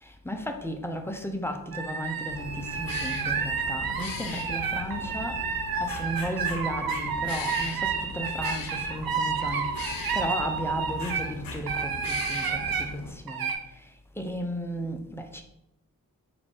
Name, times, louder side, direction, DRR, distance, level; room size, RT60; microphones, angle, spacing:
voice 1, 0.0-5.4 5.8-9.7 10.1-13.9 14.2-15.4, equal, 5° left, 4 dB, 0.4 m, -34 dB
sound 1, 1.7-11.3 11.7-12.9 13.3-13.6, right 6 dB, 90° right, 0.5 m, -30 dB
sound 2, 2.3-13.1, left 4 dB, 75° left, 0.5 m, -39 dB
3.7 x 2.5 x 3.4 m, 0.83 s
wide cardioid pair, 80°, 34 cm